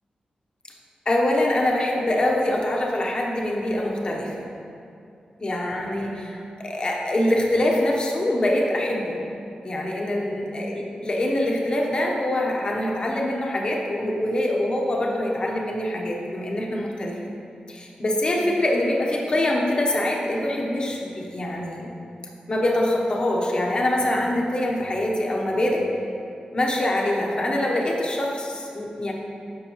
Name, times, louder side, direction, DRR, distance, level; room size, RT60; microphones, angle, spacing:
voice 1, 1.1-4.5 5.4-9.2 9.6-17.3 17.7-21.9 22.5-25.8 26.5-29.1, left 1 dB, 35° left, -1 dB, 1.0 m, -24 dB
10.0 x 6.2 x 3.1 m, 2.6 s
wide cardioid pair, 115°, 3 cm